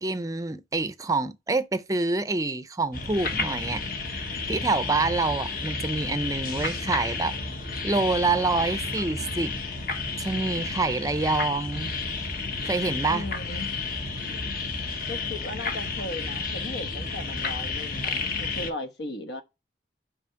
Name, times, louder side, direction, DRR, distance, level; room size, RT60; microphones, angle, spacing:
voice 1, 0.0-3.8 4.5-7.3 7.8-9.6 10.2-11.9 12.6-13.2, right 3 dB, 20° right, 0.5 m, -26 dB
sound 1, 2.9-18.7, left 4 dB, 55° left, 1.2 m, -31 dB
voice 2, 13.1-13.7 15.1-19.4, left 2 dB, 75° left, 1.2 m, -37 dB
6.1 x 5.0 x 4.5 m
head